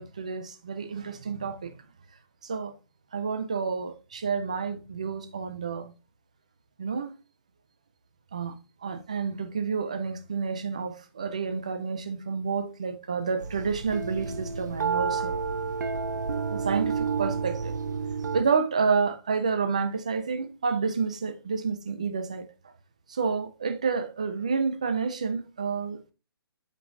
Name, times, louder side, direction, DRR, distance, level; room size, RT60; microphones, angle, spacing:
voice 1, 0.0-1.8 2.4-2.7 3.1-5.9 6.8-7.1 8.3-8.6 8.8-15.4 16.5-17.7 18.3-22.5 23.1-26.1, right 5 dB, 15° right, 0.3 m, -29 dB
sound 1, 13.4-18.4, right 5 dB, 45° right, 0.8 m, -30 dB
7.8 x 5.2 x 2.6 m
hypercardioid pair, 175°, 13 cm